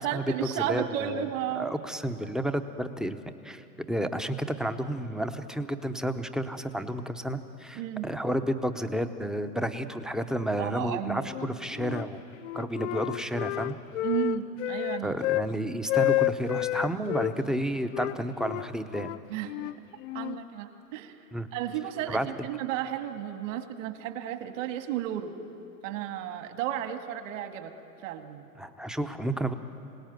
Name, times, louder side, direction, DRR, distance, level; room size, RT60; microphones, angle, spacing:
voice 1, 0.0-1.7 7.8-8.1 10.6-11.5 14.0-15.2 19.3-19.7 20.1-21.3 21.5-25.3 25.8-27.7 28.0-28.5, right 11 dB, 50° right, 7 dB, 2.1 m, -33 dB
voice 2, 0.5-1.3 1.6-3.2 3.4-12.2 12.5-13.8 15.0-19.1 21.3-21.5 22.1-22.3 28.6-29.5, right 1 dB, ahead, 8 dB, 0.7 m, -31 dB
Wind instrument woodwind instrument, 11.2-12.1 12.4-15.5 15.9-17.3 17.9-20.4, left 16 dB, 50° left, 0.6 m, -30 dB
26.5 x 18.0 x 9.3 m, 2.9 s
hypercardioid pair, 110°, 49 cm